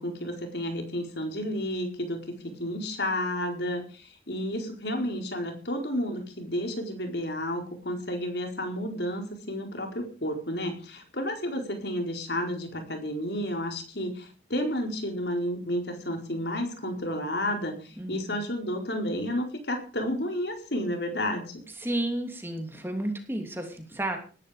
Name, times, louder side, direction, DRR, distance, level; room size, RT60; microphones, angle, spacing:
voice 1, 0.0-21.6, equal, 65° left, 4 dB, 4.6 m, -31 dB
voice 2, 18.0-18.4 21.8-24.2, right 1 dB, 10° right, 4 dB, 3.0 m, -32 dB
19.5 x 12.0 x 5.2 m, 0.38 s
head